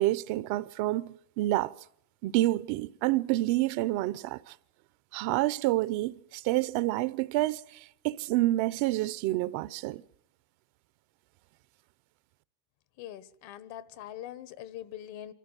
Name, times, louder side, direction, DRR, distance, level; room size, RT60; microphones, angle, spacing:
voice 1, 0.0-1.7 2.2-4.5 5.1-7.6 8.0-10.0, right 17 dB, 70° right, 0.8 m, -28 dB
voice 2, 13.0-15.3, left 11 dB, 65° left, 1.3 m, -43 dB
26.0 x 14.0 x 9.0 m
supercardioid pair, 110°, 48 cm